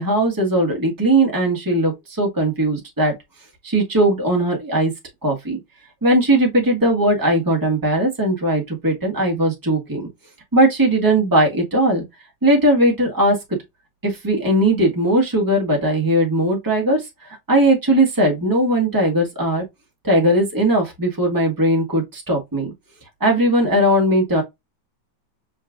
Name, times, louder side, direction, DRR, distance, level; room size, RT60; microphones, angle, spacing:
voice 1, 0.0-3.1 3.6-4.9 5.2-5.6 6.0-10.0 10.5-12.0 12.4-13.4 14.0-17.1 17.5-19.6 20.0-22.7 23.2-24.4, right 1 dB, 10° right, 1.4 m, -18 dB
5.4 x 3.6 x 2.5 m
omnidirectional pair, 2.0 m